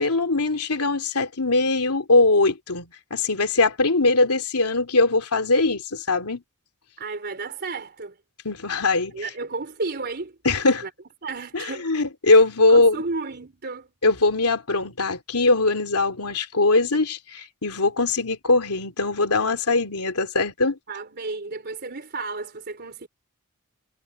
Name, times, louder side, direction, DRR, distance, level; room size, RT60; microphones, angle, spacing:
voice 1, 0.0-6.4 8.4-9.2 10.4-10.8 11.5-13.0 14.0-20.8, left 3 dB, 90° left, 2.9 m, -21 dB
voice 2, 7.0-8.1 9.1-10.4 10.8-10.9 11.2-11.9 12.3-12.4 12.7-13.9 20.9-23.1, right 3 dB, 50° right, 4.0 m, -32 dB
head